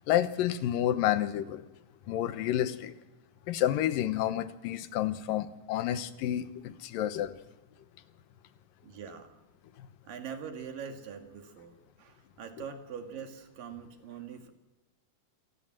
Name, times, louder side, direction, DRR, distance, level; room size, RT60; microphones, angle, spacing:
voice 1, 0.1-1.6 2.1-2.9 3.5-7.4, left 12 dB, 90° left, 12 dB, 2.8 m, -29 dB
voice 2, 8.8-9.4 10.0-14.5, right 7 dB, 80° right, 5 dB, 3.7 m, -43 dB
27.0 x 18.5 x 7.6 m, 1.2 s
omnidirectional pair, 3.8 m